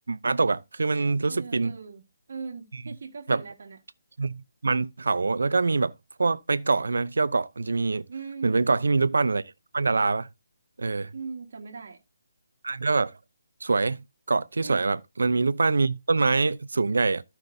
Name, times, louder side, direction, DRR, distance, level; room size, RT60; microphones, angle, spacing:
voice 1, 0.1-1.8 3.3-3.4 4.2-5.9 6.2-8.0 8.4-9.4 9.7-10.3 10.8-11.1 12.6-13.1 13.6-14.0 14.3-17.2, right 3 dB, 80° right, 0.7 m, -24 dB
voice 2, 1.3-2.0 2.3-3.8 8.1-8.6 11.1-12.0 14.6-14.9, right 5 dB, 60° right, 1.6 m, -39 dB
14.0 x 5.8 x 2.7 m
hypercardioid pair, 160°, 0 cm